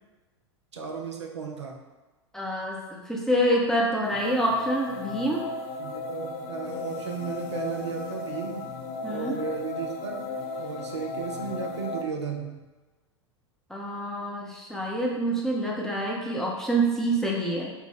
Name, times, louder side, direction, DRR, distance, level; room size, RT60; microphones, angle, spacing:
voice 1, 0.7-1.8 5.8-8.7 9.1-10.3 10.6-12.6, right 5 dB, 75° right, 1 dB, 0.6 m, -34 dB
voice 2, 2.3-5.4 9.0-9.4 13.7-17.7, right 1 dB, 5° left, -3 dB, 0.7 m, -27 dB
sound 1, 4.0-12.0, left 3 dB, 50° left, 0.5 m, -35 dB
3.6 x 2.3 x 4.3 m, 1.2 s
figure-of-eight pair, 90°, 15 cm